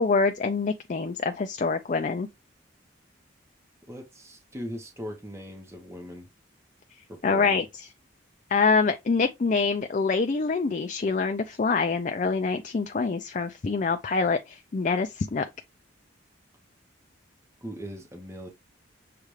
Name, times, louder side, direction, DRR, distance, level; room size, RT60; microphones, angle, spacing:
voice 1, 0.0-2.3 7.2-7.6 8.5-15.4, left 4 dB, 40° left, 0.4 m, -25 dB
voice 2, 3.9-6.3 7.1-7.6 17.6-18.5, equal, 15° right, 0.8 m, -39 dB
6.8 x 2.4 x 3.1 m
head